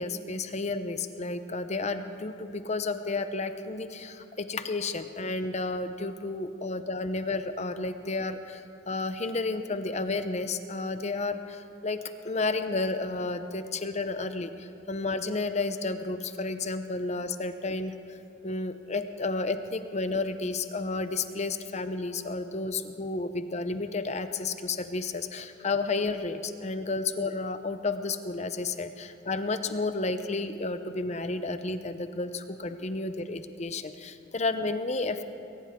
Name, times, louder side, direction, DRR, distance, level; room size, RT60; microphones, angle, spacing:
voice 1, 0.0-12.0 12.2-18.2 18.4-35.2, left 3 dB, 35° left, 10 dB, 0.7 m, -32 dB
20.5 x 18.5 x 3.7 m, 2.6 s
head